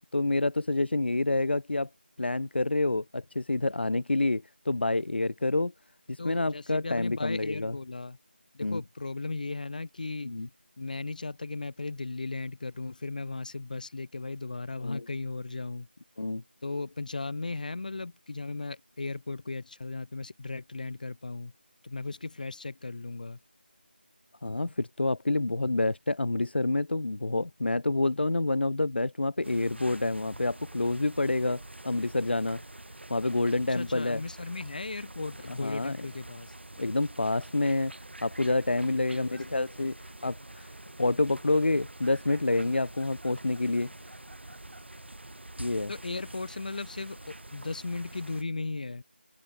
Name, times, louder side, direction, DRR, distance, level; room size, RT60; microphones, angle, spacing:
voice 1, 0.1-1.9 2.2-5.7 6.1-7.7 8.6-8.8 10.2-10.5 14.8-15.0 16.2-16.4 24.4-32.6 33.1-34.2 35.5-36.0 36.8-37.9 38.2-39.9 40.2-40.7 41.0-43.9 45.6-45.9, left 2 dB, 70° left, 1.1 m, -28 dB
voice 2, 6.2-8.2 8.5-10.3 10.8-15.9 16.6-21.5 21.8-23.4 33.7-36.5 39.1-39.4 39.8-39.9 45.9-49.0, left 3 dB, 45° left, 2.2 m, -36 dB
sound 1, 29.4-48.4, right 1 dB, 80° right, 7.0 m, -46 dB
figure-of-eight pair, 170°, 6 cm